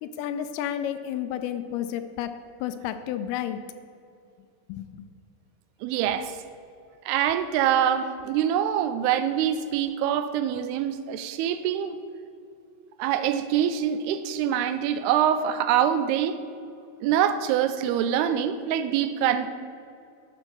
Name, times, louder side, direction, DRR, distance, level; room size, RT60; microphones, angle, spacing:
voice 1, 0.0-2.3 2.6-3.6 4.7-5.0, left 10 dB, 85° left, 9 dB, 2.4 m, -31 dB
voice 2, 5.8-6.4 7.1-12.0 13.0-16.4 17.0-19.5, right 9 dB, 85° right, 11 dB, 2.5 m, -25 dB
11.0 x 5.4 x 6.1 m, 2.4 s
omnidirectional pair, 4.6 m